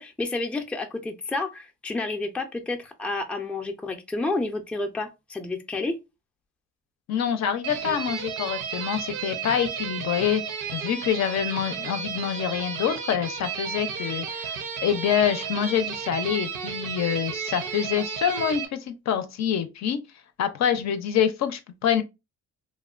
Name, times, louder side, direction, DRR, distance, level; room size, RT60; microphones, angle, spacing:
voice 1, 0.0-6.0, left 2 dB, 5° left, 0.4 m, -30 dB
voice 2, 7.1-10.4 10.7-20.0 20.4-22.0, left 9 dB, 60° left, 0.5 m, -26 dB
sound 1, 7.6-18.7, right 7 dB, 85° right, 0.6 m, -33 dB
2.9 x 2.1 x 2.3 m
cardioid pair, 90°, 30 cm